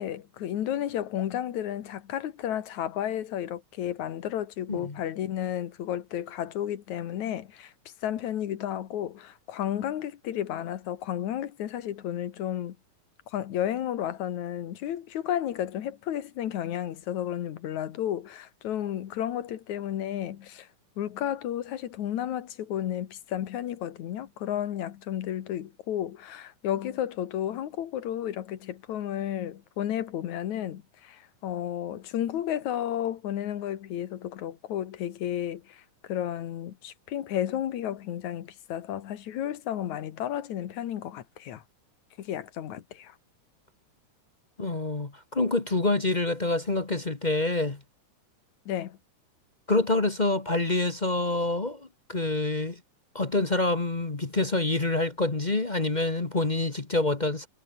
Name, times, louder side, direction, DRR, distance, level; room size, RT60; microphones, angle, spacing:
voice 1, 0.0-7.7 8.0-12.8 13.3-20.7 21.0-35.8 36.1-41.6 42.2-43.2 48.7-49.0, left 11 dB, 65° left, 2.7 m, -32 dB
voice 2, 44.6-47.8 49.7-52.8 53.1-57.5, left 2 dB, 40° left, 0.6 m, -27 dB
omnidirectional pair, 3.7 m